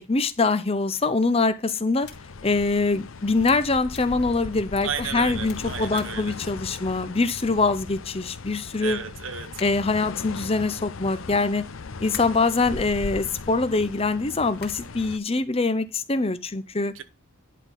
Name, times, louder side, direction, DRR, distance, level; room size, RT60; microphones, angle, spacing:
voice 1, 0.0-2.1 2.4-9.0 9.6-11.7 12.0-16.9, left 3 dB, 30° left, 0.7 m, -24 dB
sound 1, 2.0-15.2, left 4 dB, 75° left, 0.7 m, -38 dB
sound 2, 2.0-2.1 2.7-2.8 3.4-3.6 3.9-4.0 4.6-4.7 5.4-5.6 5.9-6.0 6.6-6.7 7.3-7.6 8.5-8.7 9.3-9.9 10.7-12.9 13.3-13.6 14.3-15.0, left 7 dB, 55° left, 2.5 m, -46 dB
voice 2, 4.8-6.4 8.8-9.6 16.9-17.0, right 7 dB, 70° right, 1.0 m, -33 dB
11.0 x 3.8 x 5.8 m
head